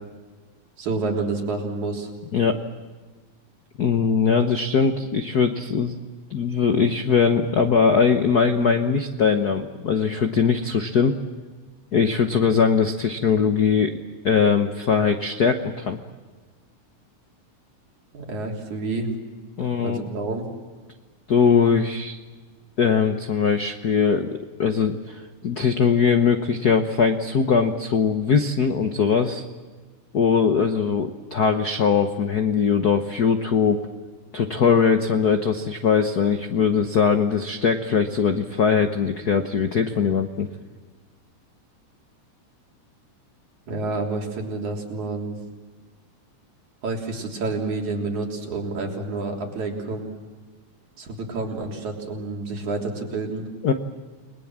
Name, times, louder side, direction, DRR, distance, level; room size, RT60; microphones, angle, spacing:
voice 1, 0.8-2.1 18.1-19.1 19.8-20.5 43.7-45.4 46.8-50.1 51.0-53.4, right 3 dB, 70° right, 1 dB, 4.8 m, -29 dB
voice 2, 3.8-6.0 6.3-11.2 11.9-14.0 14.2-16.0 19.6-20.0 21.3-22.2 22.8-29.5 30.1-33.8 34.3-40.5 53.6-53.7, left 6 dB, 75° left, 7 dB, 0.8 m, -21 dB
30.0 x 21.5 x 7.5 m, 1.4 s
omnidirectional pair, 3.5 m